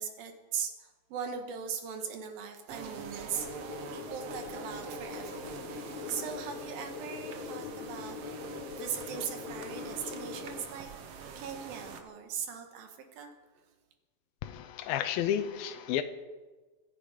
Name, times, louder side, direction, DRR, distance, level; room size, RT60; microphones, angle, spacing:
voice 1, 0.0-8.5 8.8-10.9 11.4-13.3, right 7 dB, 80° right, 6 dB, 3.3 m, -40 dB
sound 1, 2.7-12.0, right 6 dB, 60° right, 1.7 m, -44 dB
sound 2, 3.3-10.7, left 7 dB, 65° left, 2.2 m, -43 dB
voice 2, 14.4-16.0, left 10 dB, 85° left, 8 dB, 2.6 m, -31 dB
26.0 x 10.5 x 5.0 m, 1.3 s
omnidirectional pair, 4.1 m